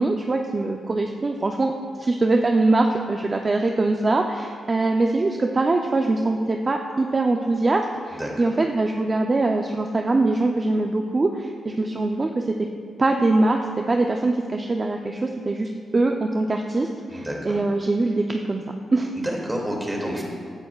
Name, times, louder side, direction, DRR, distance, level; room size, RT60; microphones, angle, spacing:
voice 1, 0.0-1.7 2.0-12.5 13.0-18.6 18.9-19.1, right 2 dB, 35° right, 3 dB, 0.6 m, -22 dB
voice 2, 8.1-8.6 17.1-17.6 19.1-20.2, equal, 15° right, -1 dB, 2.4 m, -29 dB
15.5 x 9.1 x 2.4 m, 2.1 s
cardioid pair, 70°, 0 cm